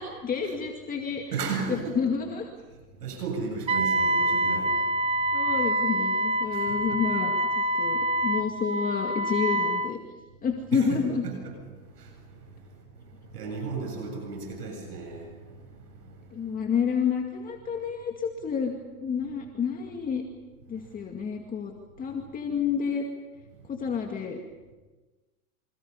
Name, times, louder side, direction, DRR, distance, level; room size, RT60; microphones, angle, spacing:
voice 1, 0.0-1.4 1.7-2.5 5.3-10.0 10.4-11.2 16.3-18.7 19.0-20.2 20.7-21.7 22.0-23.0 23.7-24.4, left 6 dB, 20° left, 2 dB, 2.2 m, -29 dB
voice 2, 1.3-1.9 3.0-5.5 6.5-7.0 10.7-12.7 13.1-16.2, right 4 dB, 85° right, 2 dB, 7.9 m, -36 dB
Wind instrument woodwind instrument, 3.7-9.9, right 1 dB, 10° right, 0.9 m, -26 dB
28.0 x 26.5 x 5.5 m, 1.3 s
supercardioid pair, 140°, 46 cm